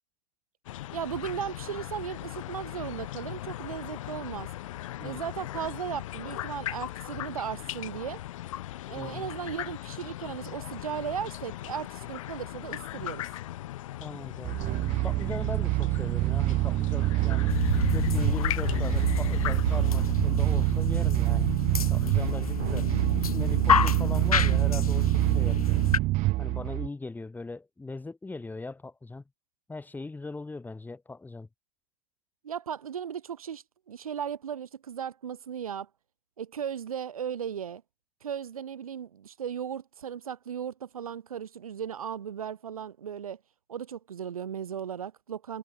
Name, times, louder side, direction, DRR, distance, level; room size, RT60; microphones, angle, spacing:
sound 1, 0.6-20.1, left 15 dB, 65° left, 5.9 m, -39 dB
voice 1, 0.9-4.5 5.0-8.2 8.9-13.2 32.4-35.9 36.4-37.8 38.2-43.4 43.7-45.6, right 8 dB, 80° right, 2.4 m, -36 dB
voice 2, 9.0-9.3 14.0-14.6 15.0-17.6 17.9-21.5 21.9-22.9 23.2-25.8 26.4-29.2 29.7-31.5, left 3 dB, 10° left, 5.7 m, -40 dB
sound 2, 14.4-26.9, right 19 dB, 40° right, 2.5 m, -26 dB
sound 3, 17.5-26.0, left 7 dB, 85° left, 1.2 m, -29 dB
hypercardioid pair, 100°, 18 cm